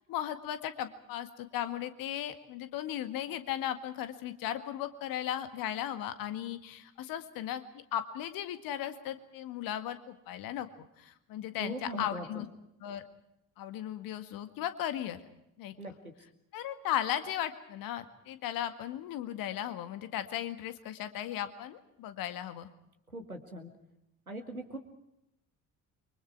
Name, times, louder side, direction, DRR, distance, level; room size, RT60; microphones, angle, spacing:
voice 1, 0.1-10.7 11.0-12.5 12.8-13.0 13.6-15.2 15.6-15.7 16.5-22.7, left 11 dB, 55° left, 10 dB, 2.0 m, -36 dB
voice 2, 11.6-12.4 15.8-16.1 23.1-23.7 24.3-24.8, right 1 dB, 90° right, 5 dB, 2.1 m, -41 dB
29.5 x 24.5 x 4.8 m, 0.83 s
figure-of-eight pair, 55°, 42 cm